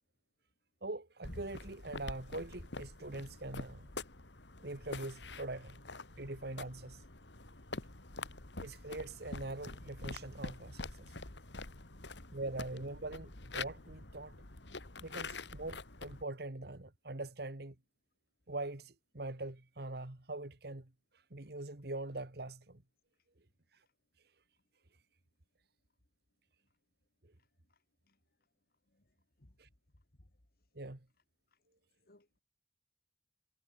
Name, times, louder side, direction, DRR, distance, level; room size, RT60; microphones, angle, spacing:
voice 1, 0.8-3.9 4.6-5.8 6.2-7.0 8.6-11.1 12.3-14.4 15.0-17.8 18.5-20.9 21.3-22.8 29.6-29.7 30.8-31.0, right 2 dB, 60° right, 1.8 m, -43 dB
sound 1, 1.2-16.2, left 3 dB, 75° left, 2.6 m, -46 dB
voice 2, 27.7-28.2 28.9-29.6 30.2-30.3 31.5-31.6 32.1-32.4, left 1 dB, 55° left, 2.1 m, -67 dB
head